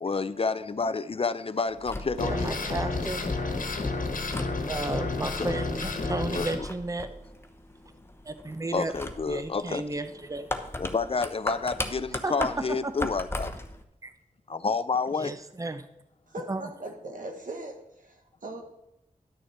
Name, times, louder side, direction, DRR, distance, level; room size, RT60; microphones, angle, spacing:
voice 1, 0.0-2.5 5.2-5.5 6.3-6.5 8.7-9.8 10.8-13.5 14.6-15.3, left 4 dB, 45° left, 14 dB, 0.4 m, -29 dB
sound 1, 1.7-13.8, left 1 dB, 15° left, 1.0 m, -39 dB
sound 2, 2.2-6.6, left 3 dB, 75° left, 1.3 m, -30 dB
voice 2, 2.2-3.3 4.7-7.1 8.2-8.9 9.3-10.5 12.2-13.1 14.0-14.1 15.1-15.9 16.5-16.7, right 2 dB, 25° right, 10 dB, 0.7 m, -33 dB
voice 3, 16.3-18.7, right 1 dB, 75° right, 3 dB, 1.6 m, -40 dB
11.0 x 6.4 x 4.3 m, 0.86 s
wide cardioid pair, 60°, 14 cm